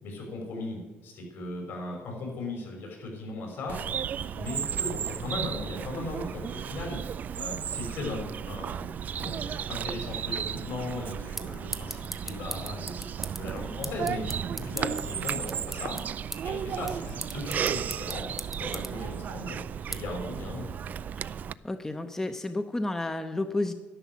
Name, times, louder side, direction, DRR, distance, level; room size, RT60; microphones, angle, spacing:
voice 1, 0.0-3.8 4.3-16.0 16.4-18.3 18.6-20.7, left 2 dB, 70° left, 0 dB, 5.9 m, -37 dB
Bird vocalization bird call bird song, 3.7-21.5, right 8 dB, 45° right, 0.4 m, -34 dB
sound 1, 10.7-21.2, right 1 dB, 5° right, 1.1 m, -42 dB
voice 2, 21.6-23.7, left 2 dB, 10° left, 8 dB, 0.7 m, -31 dB
11.0 x 11.0 x 7.4 m, 1.2 s
cardioid pair, 125°, 4 cm